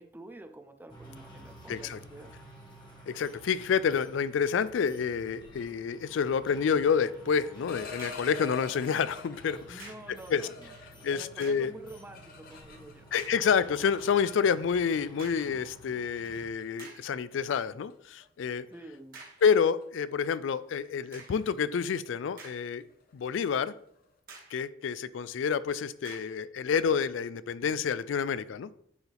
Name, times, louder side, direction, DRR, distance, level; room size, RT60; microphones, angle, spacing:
voice 1, 0.0-2.3 9.7-13.1 18.7-19.2, right 2 dB, 10° right, 8 dB, 0.5 m, -48 dB
sound 1, 0.9-16.5, right 1 dB, 25° left, 1.6 m, -52 dB
voice 2, 1.7-2.0 3.1-10.5 11.0-11.7 13.1-18.7 19.4-22.9 23.1-23.7 24.5-28.7, left 6 dB, 75° left, 17 dB, 0.4 m, -28 dB
sound 2, 7.6-9.6 10.1-13.1 13.4-14.9 15.8-16.0 16.3-16.6 17.1-17.3 17.7-17.9 18.2-18.5 18.7-24.1, left 4 dB, 50° left, 0.9 m, -48 dB
sound 3, 8.0-8.4 9.8-10.2 11.3-11.8 12.4-12.5 13.2-13.5 15.2-15.6 16.3-16.4 16.8-17.2 19.1-19.5 21.1-21.5 22.1-22.9 23.3-23.4 24.3-24.7 26.0-26.4, right 4 dB, 50° right, 1.9 m, -50 dB
9.5 x 4.8 x 3.4 m, 0.67 s
head